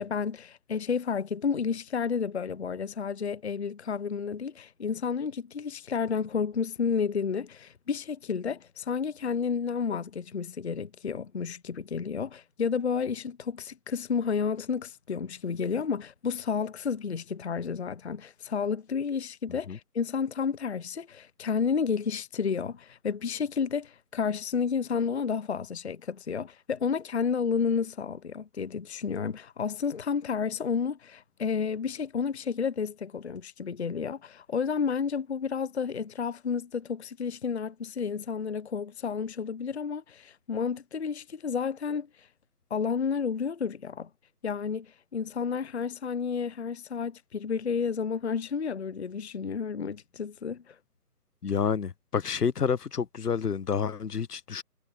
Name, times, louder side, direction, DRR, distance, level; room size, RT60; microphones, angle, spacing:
voice 1, 0.0-42.1 42.7-44.1 44.4-50.8, left 6 dB, 45° left, 0.6 m, -31 dB
voice 2, 51.4-54.6, left 6 dB, 80° left, 0.9 m, -29 dB
figure-of-eight pair, 155°, 46 cm